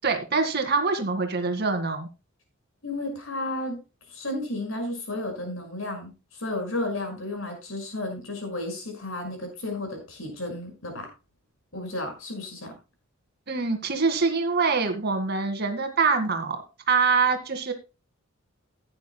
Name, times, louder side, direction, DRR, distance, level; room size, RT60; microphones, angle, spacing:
voice 1, 0.0-2.1 13.5-17.7, right 4 dB, 50° right, 5 dB, 1.9 m, -24 dB
voice 2, 2.8-3.8 4.1-11.1 11.7-12.7, left 1 dB, 70° left, 3 dB, 5.7 m, -33 dB
17.0 x 9.6 x 2.2 m, 0.29 s
head